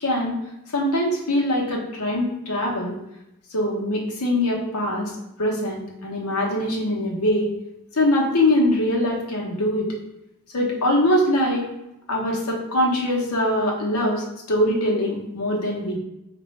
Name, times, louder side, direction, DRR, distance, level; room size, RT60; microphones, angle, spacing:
voice 1, 0.0-0.3 0.7-3.0 3.5-5.1 5.4-7.5 7.9-9.9 10.5-11.7 12.1-16.0, left 1 dB, 80° left, -2 dB, 1.1 m, -22 dB
5.1 x 2.6 x 3.2 m, 0.87 s
head